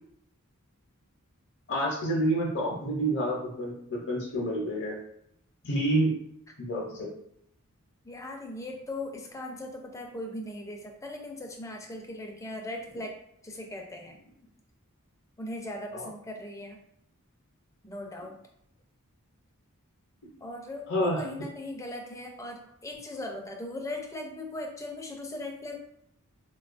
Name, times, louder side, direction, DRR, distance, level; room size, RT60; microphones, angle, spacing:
voice 1, 1.7-5.0 5.6-6.1 6.6-7.1 15.9-16.1 20.9-21.2, right 1 dB, 55° left, -3 dB, 0.6 m, -28 dB
voice 2, 8.0-13.2 13.4-14.2 15.4-16.8 17.8-18.4 20.4-25.8, left 1 dB, 15° left, 2 dB, 0.4 m, -39 dB
3.8 x 2.3 x 2.4 m, 0.73 s
head